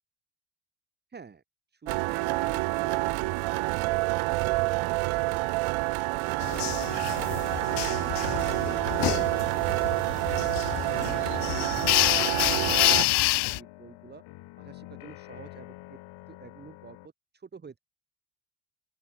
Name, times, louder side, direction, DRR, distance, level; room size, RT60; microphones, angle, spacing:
voice 1, 1.1-1.4 10.9-14.2 14.6-16.0 16.3-17.8, right 5 dB, 20° right, 4.7 m, -49 dB
sound 1, 1.9-13.0, right 23 dB, 85° right, 1.0 m, -28 dB
sound 2, 6.4-13.6, left 20 dB, 60° left, 0.7 m, -28 dB
sound 3, 11.8-17.1, left 20 dB, 90° left, 4.6 m, -48 dB
open air
cardioid pair, 170°, 47 cm